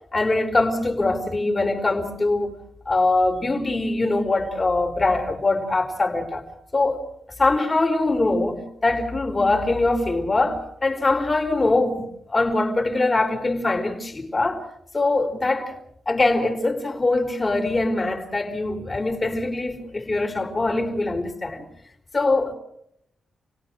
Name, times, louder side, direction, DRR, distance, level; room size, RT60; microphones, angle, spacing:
voice 1, 0.1-2.6 2.9-6.4 6.7-7.0 7.4-14.6 14.9-15.8 16.1-21.6 22.1-22.5, left 2 dB, 30° left, 4.5 m, -22 dB
29.0 x 18.0 x 6.3 m
cardioid pair, 65°, 0 cm